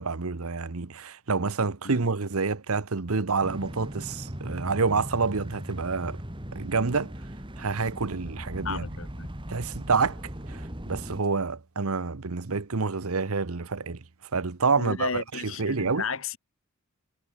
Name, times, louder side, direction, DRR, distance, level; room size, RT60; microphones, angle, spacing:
voice 1, 0.0-6.2 6.5-7.1 7.6-8.8 9.5-10.2 10.5-14.0 14.3-16.0, right 4 dB, 75° right, 1.0 m, -28 dB
sound 1, 3.4-11.2, equal, 20° right, 2.2 m, -38 dB
voice 2, 8.6-9.3 14.8-16.4, left 5 dB, 65° left, 1.6 m, -33 dB
head